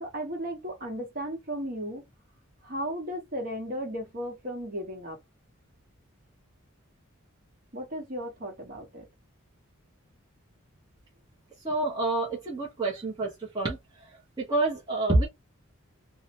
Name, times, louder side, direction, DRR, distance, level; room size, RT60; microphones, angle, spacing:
voice 1, 0.0-2.0 2.6-5.2 7.7-9.1, equal, 40° right, 1.0 m, -35 dB
voice 2, 11.6-13.3 13.5-13.8 14.4-15.3, right 2 dB, 20° right, 0.7 m, -27 dB
2.7 x 2.1 x 2.8 m
head